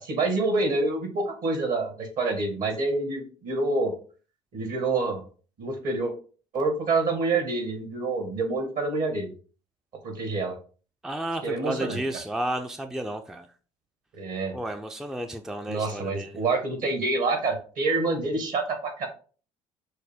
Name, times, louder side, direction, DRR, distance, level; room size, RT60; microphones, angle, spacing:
voice 1, 0.0-3.9 4.5-5.2 5.6-6.1 6.5-9.3 10.0-10.6 11.4-12.0 14.2-14.6 15.7-19.1, right 3 dB, 60° right, 5 dB, 1.6 m, -27 dB
voice 2, 11.0-13.5 14.5-16.3, right 1 dB, 5° right, 6 dB, 0.4 m, -32 dB
6.3 x 2.1 x 3.5 m, 0.39 s
hypercardioid pair, 60°, 16 cm